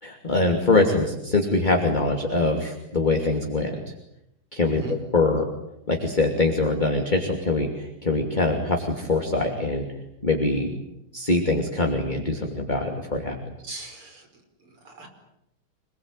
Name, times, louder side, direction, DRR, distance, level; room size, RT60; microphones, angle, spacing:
voice 1, 0.0-3.8 4.5-4.8 5.1-5.4 5.9-9.8 10.2-10.7 11.1-13.4, left 2 dB, 20° left, 2 dB, 2.8 m, -23 dB
voice 2, 13.6-15.1, right 2 dB, 80° right, 5 dB, 6.0 m, -40 dB
27.0 x 20.5 x 9.1 m, 0.83 s
omnidirectional pair, 2.3 m